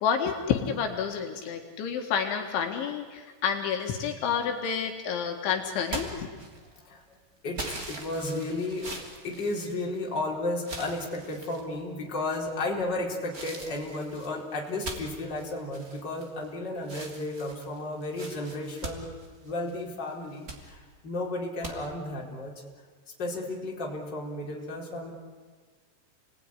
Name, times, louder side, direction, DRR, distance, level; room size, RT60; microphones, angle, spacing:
voice 1, 0.0-6.3, left 7 dB, 75° left, 3 dB, 4.0 m, -29 dB
sound 1, 5.8-6.9 7.5-10.2 10.6-11.6 12.3-12.7 13.3-16.5 16.8-19.8 20.2-20.6 21.6-21.7, right 2 dB, 25° right, 2.6 m, -41 dB
voice 2, 6.8-7.2 7.4-8.9 9.2-19.1 19.4-22.5 23.2-25.1, left 2 dB, 25° left, -2 dB, 4.4 m, -33 dB
29.5 x 20.0 x 9.9 m, 1.5 s
omnidirectional pair, 5.5 m